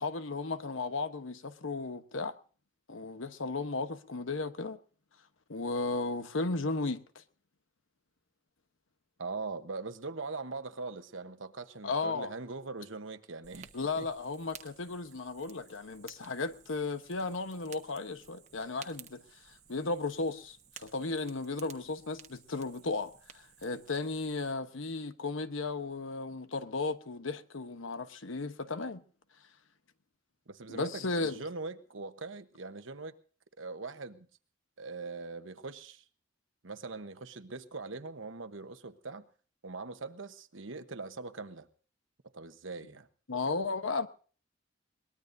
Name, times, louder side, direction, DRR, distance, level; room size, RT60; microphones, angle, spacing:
voice 1, 0.0-2.3 2.9-4.8 5.5-7.2 11.8-12.3 13.7-29.0 30.7-31.4 43.3-44.1, left 3 dB, 80° left, 1.1 m, -35 dB
voice 2, 9.2-13.7 14.0-14.1 30.5-33.1 33.6-34.3 34.8-36.0 36.6-39.3 39.6-41.7 42.3-43.1, right 3 dB, 75° right, 1.1 m, -41 dB
Fire, 13.4-24.5, right 8 dB, 35° right, 1.1 m, -55 dB
22.5 x 20.0 x 2.7 m
head